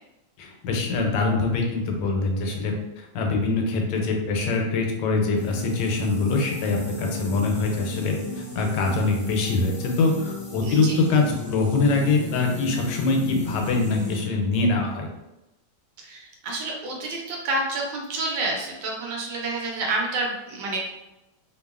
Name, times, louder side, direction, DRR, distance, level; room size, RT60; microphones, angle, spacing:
voice 1, 0.4-15.1, left 3 dB, 85° left, 1 dB, 1.2 m, -24 dB
sound 1, 5.3-14.2, left 2 dB, 40° left, 1.1 m, -34 dB
voice 2, 10.6-11.0 16.0-20.8, right 2 dB, 75° right, -1 dB, 1.2 m, -29 dB
2.9 x 2.2 x 2.3 m, 0.96 s
omnidirectional pair, 1.9 m